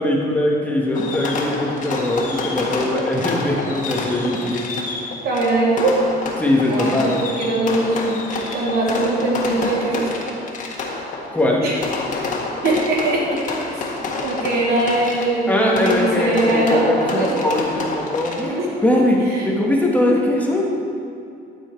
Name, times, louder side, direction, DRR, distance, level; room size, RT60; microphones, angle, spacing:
voice 1, 0.0-4.6 6.4-7.2 11.3-11.7 15.5-19.2 19.4-20.7, left 1 dB, 10° left, -2 dB, 1.4 m, -20 dB
Fireworks, 0.9-18.7, left 3 dB, 50° left, 1.7 m, -28 dB
voice 2, 5.2-5.9 6.7-8.2 8.5-10.1 11.0-11.2 11.6-11.8 12.6-13.8 14.2-17.4 18.4-18.7 19.3-19.5, right 2 dB, 65° right, -4 dB, 2.9 m, -21 dB
12.5 x 7.4 x 4.6 m, 2.5 s
cardioid pair, 110°, 17 cm